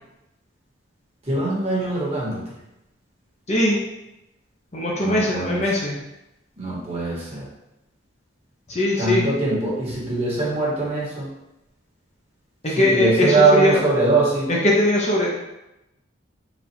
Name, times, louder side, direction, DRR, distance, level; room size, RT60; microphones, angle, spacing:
voice 1, 1.2-2.4 5.0-5.6 6.6-7.4 9.0-11.3 12.7-14.5, right 3 dB, 30° right, -6 dB, 1.3 m, -22 dB
voice 2, 3.5-3.8 4.7-5.9 8.7-9.2 12.6-13.8 14.5-15.3, left 1 dB, 35° left, -4 dB, 0.7 m, -20 dB
4.1 x 2.4 x 4.3 m, 0.92 s
head